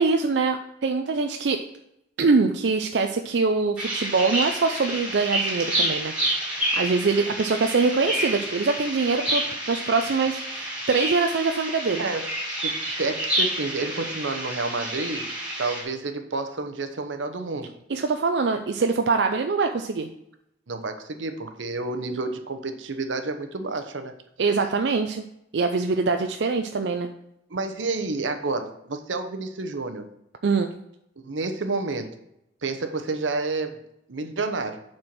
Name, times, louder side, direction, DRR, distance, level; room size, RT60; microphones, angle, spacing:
voice 1, 0.0-1.6 2.2-6.1 6.7-12.1 17.9-20.1 24.4-25.2 25.5-27.1 30.4-30.7, right 4 dB, 65° right, 5 dB, 0.5 m, -23 dB
sound 1, 3.8-15.8, right 1 dB, 5° right, 2.1 m, -29 dB
voice 2, 12.6-15.3 15.6-17.7 20.7-24.1 27.5-30.1 31.2-32.1 32.6-33.8 34.1-34.8, right 3 dB, 85° right, 7 dB, 0.9 m, -30 dB
7.6 x 4.4 x 5.9 m, 0.80 s
head